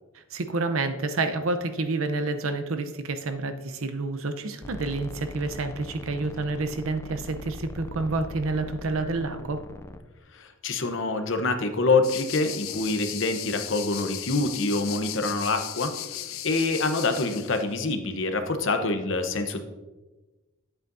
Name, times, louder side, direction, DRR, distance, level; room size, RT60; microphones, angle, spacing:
voice 1, 0.1-9.6, right 3 dB, 80° right, 8 dB, 0.7 m, -29 dB
sound 1, 4.6-10.0, left 1 dB, 15° left, 0.3 m, -41 dB
voice 2, 10.3-19.6, left 3 dB, 65° left, 7 dB, 0.9 m, -26 dB
sound 2, 12.0-17.6, left 12 dB, 85° left, 0.5 m, -37 dB
10.5 x 8.3 x 2.6 m, 1.2 s
head